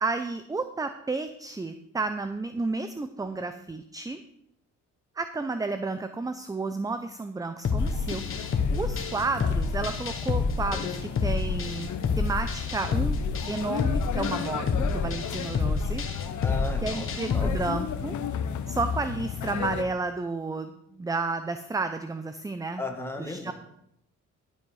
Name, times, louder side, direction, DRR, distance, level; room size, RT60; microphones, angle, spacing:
voice 1, 0.0-4.2 5.2-8.2 8.7-11.9 12.2-13.2 13.5-16.0 16.8-18.2 18.7-22.8 23.2-23.5, right 3 dB, 10° right, 9 dB, 0.6 m, -32 dB
sound 1, 7.6-17.5, left 4 dB, 45° left, 1.4 m, -28 dB
sound 2, 7.8-19.9, left 8 dB, 75° left, 1.0 m, -34 dB
voice 2, 16.4-17.1 17.3-17.5 22.8-23.5, left 2 dB, 10° left, 3 dB, 2.1 m, -35 dB
12.0 x 7.7 x 4.9 m, 0.77 s
cardioid pair, 90°, 30 cm